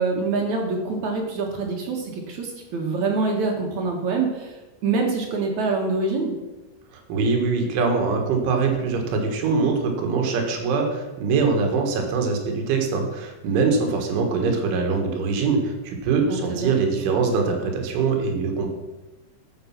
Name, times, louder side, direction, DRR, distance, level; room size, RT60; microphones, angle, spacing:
voice 1, 0.0-4.6 4.8-6.3 16.5-16.7, right 4 dB, 60° right, 1 dB, 2.0 m, -25 dB
voice 2, 7.1-18.7, right 4 dB, 85° right, 3 dB, 4.2 m, -23 dB
13.5 x 6.8 x 5.9 m, 1.1 s
omnidirectional pair, 5.3 m